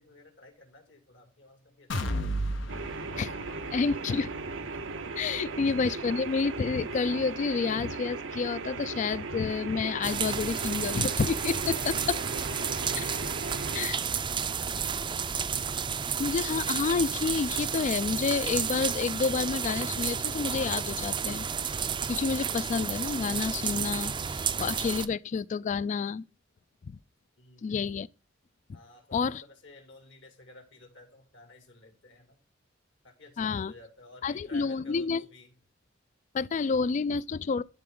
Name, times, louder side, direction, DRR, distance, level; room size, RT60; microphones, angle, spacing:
voice 1, 0.0-2.4 12.1-16.2 27.4-27.9 28.7-32.4 33.0-35.5, left 2 dB, 70° left, 2.5 m, -53 dB
sound 1, 1.9-9.7 10.1-10.2 10.6-10.7, equal, 90° left, 1.1 m, -38 dB
sound 2, 2.7-13.9, right 4 dB, 90° right, 0.7 m, -37 dB
voice 2, 3.7-4.3 5.2-12.2 13.7-14.0 16.2-21.4 22.1-26.2 26.8-27.0 27.6-28.1 28.7-28.8 29.1-29.4 33.4-33.7 34.2-35.2 36.3-37.6, left 5 dB, 40° left, 0.3 m, -29 dB
sound 3, 10.0-25.1, right 7 dB, 25° right, 0.4 m, -32 dB
12.5 x 4.2 x 3.7 m
head